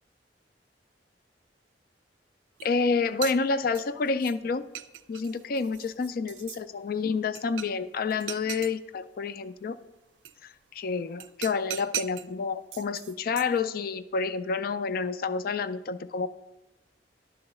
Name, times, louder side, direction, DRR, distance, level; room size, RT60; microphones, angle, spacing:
voice 1, 2.6-4.6 5.1-9.8 10.4-16.3, left 4 dB, 55° left, 13 dB, 0.4 m, -29 dB
sound 1, 2.6-2.7 3.1-4.4 4.8-6.6 7.4-7.8 8.1-8.7 10.3-10.4 11.2-12.3 12.7-13.6, right 12 dB, 80° right, 0.4 m, -38 dB
11.5 x 3.9 x 5.4 m, 0.96 s
head